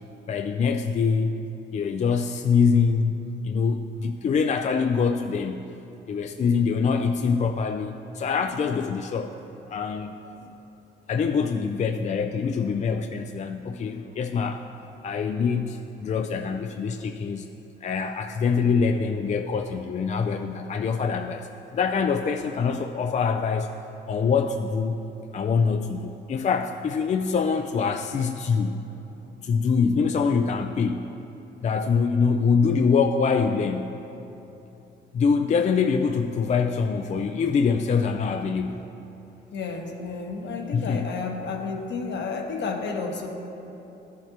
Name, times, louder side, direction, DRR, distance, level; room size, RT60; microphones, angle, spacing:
voice 1, 0.3-1.3 1.7-5.7 6.1-9.3 9.7-10.2 11.1-14.6 15.0-17.5 17.8-23.7 24.1-25.0 25.3-28.8 29.4-31.1 31.6-34.0 35.1-38.9 40.7-41.1, left 5 dB, 35° left, 6 dB, 0.4 m, -24 dB
voice 2, 39.5-43.3, left 4 dB, 60° left, 2 dB, 1.1 m, -31 dB
13.0 x 7.5 x 2.9 m, 3.0 s
cardioid pair, 90°, 20 cm